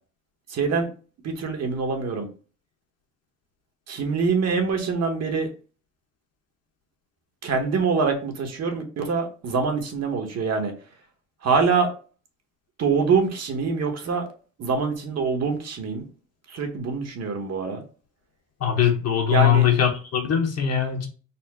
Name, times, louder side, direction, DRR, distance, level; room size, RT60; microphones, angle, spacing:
voice 1, 0.5-0.9 1.2-2.3 3.9-5.5 7.4-10.7 11.4-11.9 12.8-14.3 14.6-16.0 16.5-17.8 19.3-19.7, right 5 dB, 55° right, 4 dB, 1.0 m, -24 dB
voice 2, 18.6-21.1, left 9 dB, 55° left, 3 dB, 1.1 m, -21 dB
4.2 x 2.0 x 3.4 m, 0.37 s
cardioid pair, 90°, 30 cm